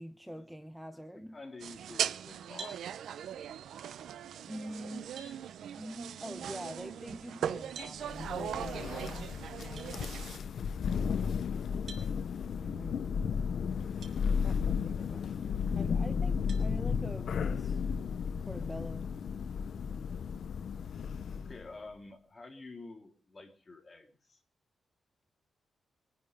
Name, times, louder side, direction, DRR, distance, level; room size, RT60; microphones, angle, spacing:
voice 1, 0.0-1.4 4.5-5.1 5.7-10.2 12.6-13.0 14.4-17.8 18.5-19.1, equal, 5° right, 1.0 m, -45 dB
voice 2, 0.9-2.8 21.3-24.4, left 3 dB, 25° left, 3.2 m, -50 dB
sound 1, 1.6-10.4, right 9 dB, 90° right, 0.7 m, -39 dB
sound 2, 2.6-2.8 4.5-4.6 5.2-5.4 7.7-8.0 9.8-9.9 11.9-12.1 14.0-14.2 14.8-14.9 16.5-16.7, right 4 dB, 60° right, 5.1 m, -46 dB
Thunder, 8.0-21.7, left 6 dB, 65° left, 0.8 m, -34 dB
24.5 x 10.0 x 5.2 m
wide cardioid pair, 140°, 0 cm